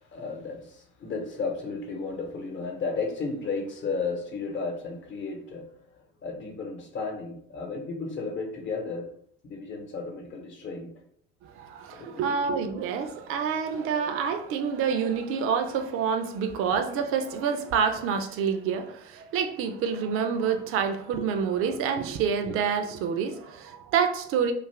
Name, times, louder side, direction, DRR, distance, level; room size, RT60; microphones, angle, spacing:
voice 1, 0.1-5.7 6.2-9.1 9.4-10.9 11.9-12.3, left 4 dB, 40° left, 0.9 m, -33 dB
voice 2, 11.4-24.5, right 6 dB, 50° right, 0.5 m, -27 dB
2.6 x 2.4 x 3.2 m
hypercardioid pair, 70°, 29 cm